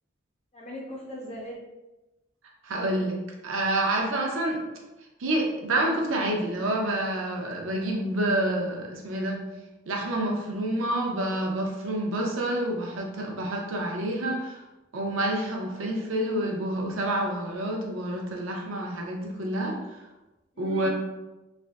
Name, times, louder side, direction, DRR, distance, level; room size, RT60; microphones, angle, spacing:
voice 1, 0.5-1.6 20.6-20.9, equal, 30° left, -4 dB, 0.7 m, -38 dB
voice 2, 2.6-4.6 5.2-9.4 9.9-14.6 14.9-20.0 20.6-20.9, right 1 dB, 75° right, 0 dB, 0.6 m, -28 dB
3.3 x 2.5 x 2.3 m, 1.0 s
head